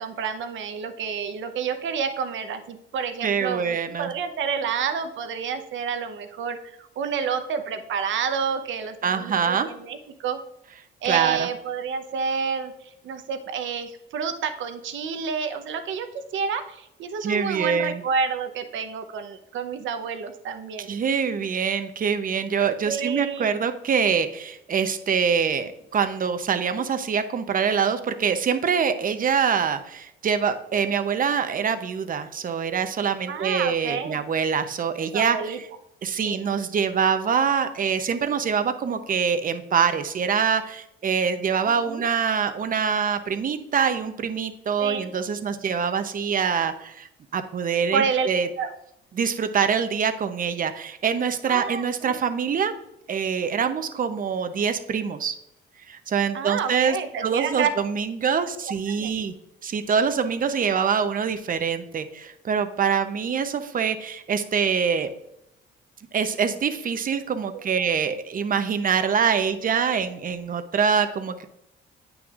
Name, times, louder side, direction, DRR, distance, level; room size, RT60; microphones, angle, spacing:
voice 1, 0.0-10.4 11.0-16.1 16.3-20.9 22.8-23.5 31.5-31.7 33.3-34.2 35.1-35.6 36.2-36.4 41.7-42.0 44.8-45.1 47.9-48.3 48.6-48.7 51.5-52.2 56.3-57.7 58.6-58.7 59.0-59.1 67.5-67.6, right 6 dB, 75° right, 8 dB, 0.9 m, -29 dB
voice 2, 3.2-4.1 9.0-9.7 11.0-11.5 17.2-18.0 20.9-35.7 36.0-48.5 49.1-52.7 53.1-55.4 55.9-57.0 57.2-59.4 59.6-65.1 66.1-71.5, right 6 dB, 45° right, 9 dB, 0.7 m, -24 dB
9.0 x 6.1 x 2.5 m, 0.81 s
cardioid pair, 90°, 20 cm